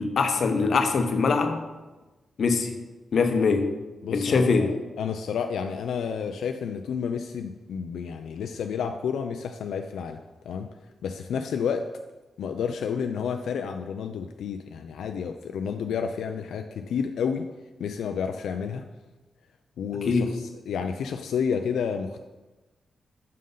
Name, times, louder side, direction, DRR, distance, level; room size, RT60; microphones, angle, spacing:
voice 1, 0.0-1.7 2.4-2.8 3.1-3.7 4.1-4.7 20.0-20.3, left 4 dB, 55° left, 7 dB, 0.7 m, -23 dB
voice 2, 4.0-10.2 10.5-10.7 11.0-11.9 12.4-17.5 17.8-18.8 19.8-22.2, left 6 dB, 90° left, 5 dB, 0.3 m, -30 dB
6.4 x 3.8 x 5.4 m, 1.1 s
cardioid pair, 115°, 0 cm